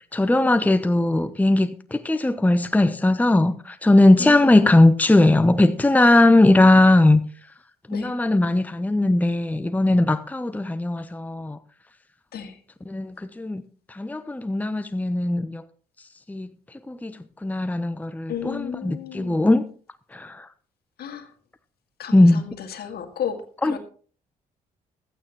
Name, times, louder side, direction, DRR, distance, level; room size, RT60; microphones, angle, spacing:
voice 1, 0.1-7.2 7.9-11.6 12.9-13.6 13.9-15.6 16.3-16.5 16.9-19.7 20.1-20.5 22.1-22.4 23.6-23.8, left 2 dB, 10° left, 0.8 m, -19 dB
voice 2, 4.2-4.8 7.9-8.1 12.3-12.6 18.3-19.4 21.0-21.3 22.0-23.8, left 8 dB, 60° left, 1.9 m, -33 dB
15.5 x 12.5 x 3.0 m
hypercardioid pair, 45°, 18 cm